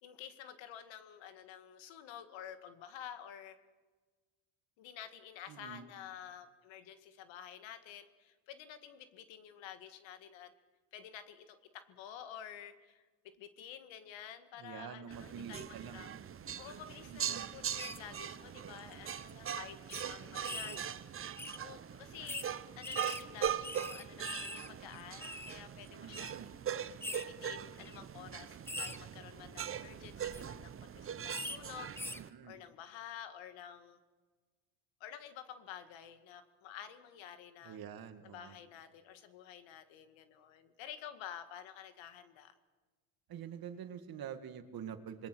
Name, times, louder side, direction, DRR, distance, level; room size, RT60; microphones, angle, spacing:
voice 1, 0.0-3.6 4.8-10.5 10.9-16.1 16.6-20.8 21.5-22.5 22.8-26.4 27.1-34.0 35.0-37.8 38.2-42.6, left 9 dB, 75° left, 10 dB, 2.1 m, -50 dB
voice 2, 5.5-5.9 14.6-16.2 17.0-17.5 20.5-20.8 26.0-26.5 32.1-32.6 37.6-38.6 43.3-45.3, right 8 dB, 50° right, 9 dB, 2.0 m, -47 dB
sound 1, 15.1-32.3, right 9 dB, 30° right, 0.8 m, -41 dB
sound 2, 17.8-18.0 18.8-18.9 19.2-19.3 19.9-20.0 20.4-20.8 21.4-21.6 22.3-22.5 22.8-24.7 24.9-25.5 26.1-26.3 27.0-27.2 27.8-28.0 28.7-29.0 30.1-30.4 31.3-31.6 32.0-32.2, left 1 dB, 5° left, 0.7 m, -42 dB
27.0 x 21.0 x 6.3 m, 1.4 s
cardioid pair, 125°, 46 cm